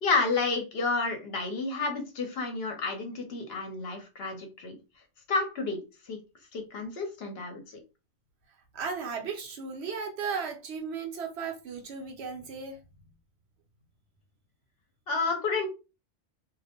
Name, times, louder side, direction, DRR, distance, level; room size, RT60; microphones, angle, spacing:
voice 1, 0.0-4.8 5.3-6.2 6.5-7.8 15.1-15.7, left 4 dB, 65° left, 0.9 m, -30 dB
voice 2, 8.7-12.8, right 5 dB, 70° right, 0.9 m, -35 dB
2.5 x 2.0 x 2.8 m
omnidirectional pair, 1.2 m